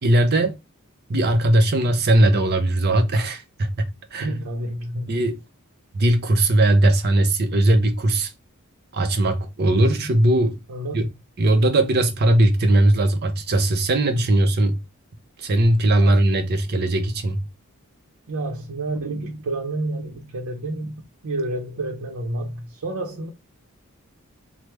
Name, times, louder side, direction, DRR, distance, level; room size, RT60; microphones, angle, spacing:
voice 1, 0.0-0.6 1.1-4.4 5.1-5.4 5.9-8.3 8.9-10.6 10.9-11.1 11.4-14.8 15.4-17.4, right 1 dB, 50° right, 0.6 m, -19 dB
voice 2, 4.2-5.1 10.7-11.1 16.0-16.1 18.3-23.3, right 2 dB, 85° right, 0.6 m, -29 dB
3.1 x 2.1 x 3.1 m
head